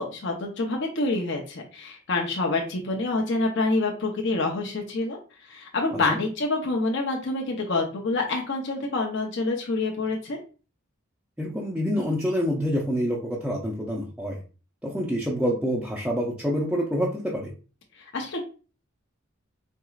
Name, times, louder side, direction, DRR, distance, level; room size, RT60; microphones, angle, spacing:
voice 1, 0.0-5.2 5.4-10.4 18.0-18.4, left 2 dB, 60° left, 1 dB, 0.7 m, -27 dB
voice 2, 11.4-14.4 14.8-17.5, equal, 5° right, -5 dB, 0.5 m, -27 dB
4.5 x 2.9 x 2.4 m, 0.35 s
head